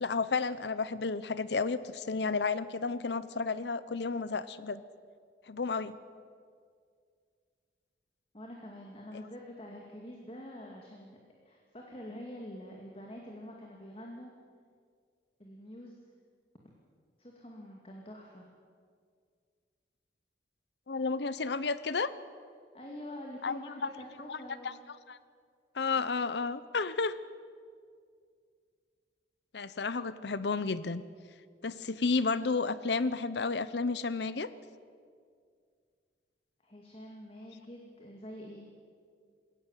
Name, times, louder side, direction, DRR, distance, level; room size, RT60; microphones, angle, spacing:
voice 1, 0.0-4.8 5.5-5.9 9.1-9.2 20.9-22.1 23.4-23.6 24.3-24.4 24.6-24.7 25.1-25.2 25.7-27.2 29.5-31.0 31.6-34.5, left 4 dB, 75° left, 15 dB, 0.7 m, -32 dB
voice 2, 8.3-11.2 11.4-14.3 15.4-16.0 17.2-18.5 22.7-24.8 26.0-26.1 36.6-38.7, left 1 dB, 30° left, 0 dB, 2.3 m, -46 dB
21.5 x 17.0 x 9.0 m, 2.1 s
head